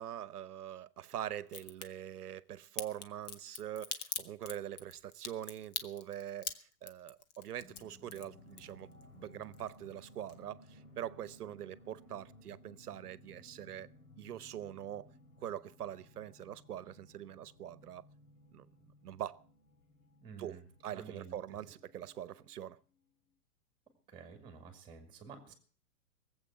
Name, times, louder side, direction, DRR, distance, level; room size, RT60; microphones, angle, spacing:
voice 1, 0.0-13.9 14.2-15.1 15.4-18.0 18.5-18.7 19.0-19.4 20.4-22.8, right 11 dB, 85° right, 1.0 m, -44 dB
Crack, 1.5-1.9 2.8-9.0 9.3-10.0 10.3-10.4, left 7 dB, 30° left, 1.0 m, -42 dB
sound 1, 7.6-23.0, left 1 dB, 60° left, 3.8 m, -60 dB
voice 2, 20.2-20.6 20.9-21.4 24.1-25.5, right 6 dB, 10° right, 2.3 m, -50 dB
19.0 x 8.0 x 7.4 m
hypercardioid pair, 165°, 45 cm